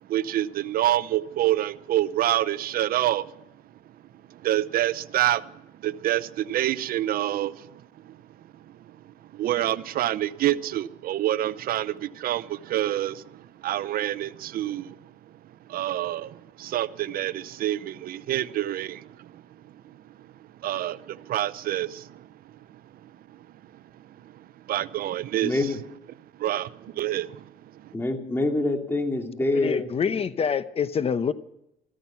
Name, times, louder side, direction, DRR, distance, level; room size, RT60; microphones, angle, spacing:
voice 1, 0.0-3.4 4.3-8.2 8.6-15.1 15.7-19.4 19.8-20.0 20.6-22.3 22.7-23.5 24.0-25.7 26.3-27.9, right 13 dB, 60° right, 0.7 m, -28 dB
voice 2, 25.4-25.8 27.9-29.9, left 2 dB, 15° left, 2.6 m, -25 dB
voice 3, 29.5-31.3, left 7 dB, 35° left, 0.9 m, -26 dB
14.0 x 13.5 x 5.7 m
cardioid pair, 110°, 17 cm